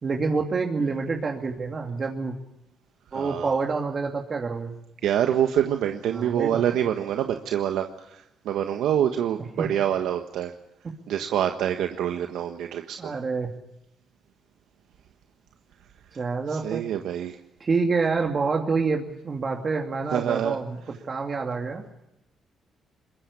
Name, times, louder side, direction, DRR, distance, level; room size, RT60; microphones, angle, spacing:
voice 1, 0.0-2.3 3.1-4.7 6.1-6.6 9.6-9.7 13.0-13.5 16.2-16.8 17.6-20.8 21.1-21.9, right 4 dB, 40° right, 2 dB, 2.6 m, -27 dB
voice 2, 3.1-3.5 5.0-10.5 11.1-13.1 16.5-17.4 20.1-20.6, right 10 dB, 80° right, 6 dB, 1.4 m, -26 dB
23.0 x 20.5 x 8.5 m, 0.88 s
cardioid pair, 90°, 0 cm